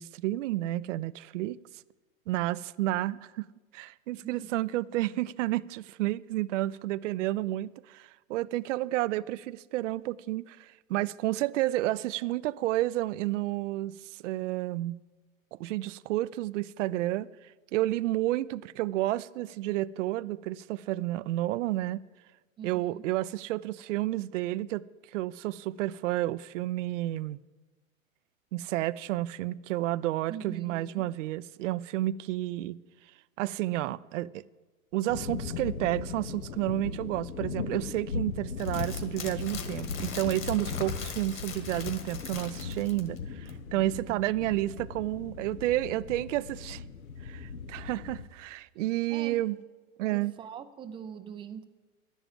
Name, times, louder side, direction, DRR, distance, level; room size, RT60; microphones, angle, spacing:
voice 1, 0.0-1.6 2.3-3.5 3.7-15.0 15.5-22.0 22.6-24.8 25.1-27.4 28.5-32.8 33.4-34.4 34.9-46.8 47.2-49.6 50.0-50.3, right 15 dB, 65° right, 0.5 m, -31 dB
voice 2, 4.1-4.5 22.6-23.1 30.3-31.1 43.8-44.2 49.1-49.4 50.1-51.6, right 8 dB, 15° right, 0.4 m, -43 dB
sound 1, 35.1-48.2, left 5 dB, 90° left, 1.2 m, -38 dB
sound 2, 38.6-43.2 43.5-43.6, left 6 dB, 30° left, 1.7 m, -39 dB
11.0 x 7.2 x 9.1 m
hypercardioid pair, 120°, 41 cm